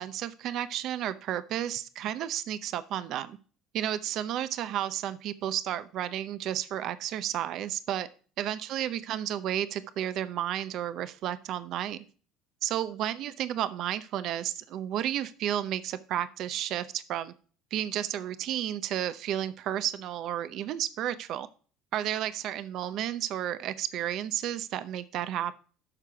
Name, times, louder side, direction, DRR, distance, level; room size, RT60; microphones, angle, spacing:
voice 1, 0.0-3.4 3.7-8.1 8.4-12.0 12.6-17.3 17.7-21.5 21.9-25.6, right 11 dB, 55° right, 13 dB, 0.7 m, -32 dB
12.5 x 4.7 x 4.9 m, 0.39 s
supercardioid pair, 110°, 0 cm